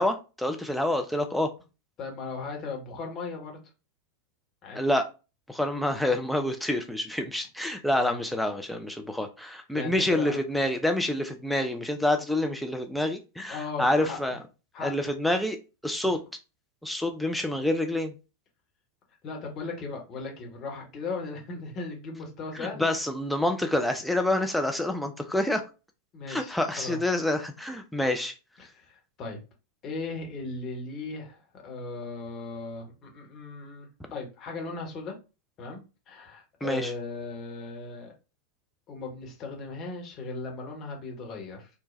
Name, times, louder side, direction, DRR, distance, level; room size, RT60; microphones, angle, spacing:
voice 1, 0.0-1.5 4.7-5.1 5.5-14.4 14.8-15.6 15.8-16.2 16.8-18.1 22.6-25.6 26.3-28.3 36.6-36.9, left 1 dB, ahead, 0.3 m, -27 dB
voice 2, 2.0-3.6 4.6-4.8 7.9-8.2 9.7-10.4 13.5-14.4 14.7-14.9 19.2-22.9 26.1-27.0 28.6-29.4 29.8-35.1 35.6-35.8 36.1-38.1 38.9-41.7, left 3 dB, 30° left, 1.0 m, -37 dB
3.0 x 2.1 x 2.5 m
figure-of-eight pair, 90°, 0 cm